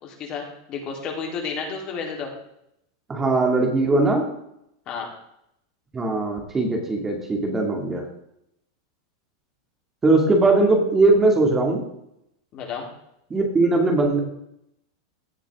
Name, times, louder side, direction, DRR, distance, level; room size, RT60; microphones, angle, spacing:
voice 1, 0.0-2.3 4.9-5.1 12.5-12.9, left 5 dB, 40° left, 0 dB, 3.6 m, -31 dB
voice 2, 3.1-4.3 5.9-8.0 10.0-11.8 13.3-14.2, right 2 dB, 15° right, 2 dB, 2.4 m, -20 dB
16.5 x 7.2 x 3.7 m, 0.78 s
hypercardioid pair, 115°, 2 cm